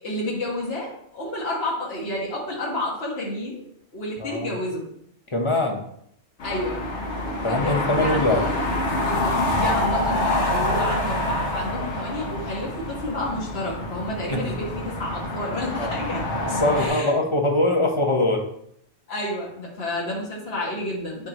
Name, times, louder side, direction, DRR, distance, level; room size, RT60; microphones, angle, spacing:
voice 1, 0.0-3.6 3.9-4.8 6.4-6.8 7.5-8.5 9.0-16.2 16.8-17.1 19.1-21.3, left 1 dB, 65° left, -4 dB, 1.9 m, -30 dB
voice 2, 4.2-4.5 5.3-5.9 7.4-8.4 14.3-14.5 15.8-16.0 16.3-18.5, left 2 dB, 30° left, 2 dB, 1.0 m, -23 dB
sound 1, 6.4-16.9, left 1 dB, 80° left, 1.4 m, -26 dB
9.3 x 4.5 x 3.0 m, 0.71 s
omnidirectional pair, 1.2 m